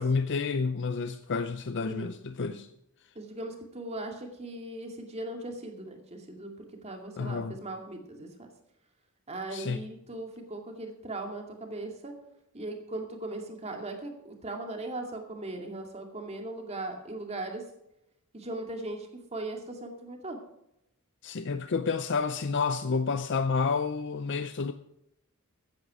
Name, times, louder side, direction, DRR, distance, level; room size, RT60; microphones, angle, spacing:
voice 1, 0.0-2.7 7.2-7.5 9.5-9.8 21.2-24.7, left 4 dB, 55° left, 0.6 m, -29 dB
voice 2, 1.8-2.1 2.5-2.6 3.2-8.5 9.3-12.2 12.5-17.7 18.3-20.4, right 2 dB, 30° right, 2.2 m, -39 dB
14.5 x 9.5 x 4.9 m
head